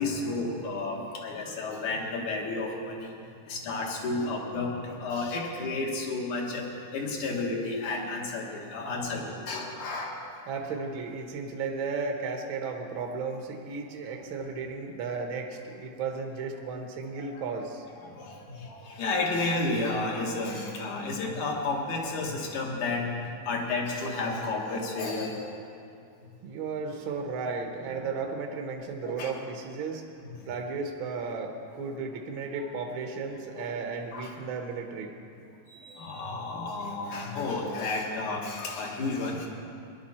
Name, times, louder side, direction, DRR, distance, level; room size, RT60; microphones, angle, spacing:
voice 1, 0.0-3.1 3.5-6.6 6.9-10.2 17.2-17.4 17.9-23.1 23.5-25.4 29.0-29.3 30.2-30.3 33.6-33.7 34.1-34.3 35.7-39.5, left 3 dB, 75° left, -1 dB, 3.1 m, -32 dB
voice 2, 10.5-17.8 26.4-30.0 30.5-35.1, right 4 dB, 60° right, 3 dB, 1.4 m, -34 dB
19.0 x 11.0 x 4.3 m, 2.4 s
omnidirectional pair, 3.5 m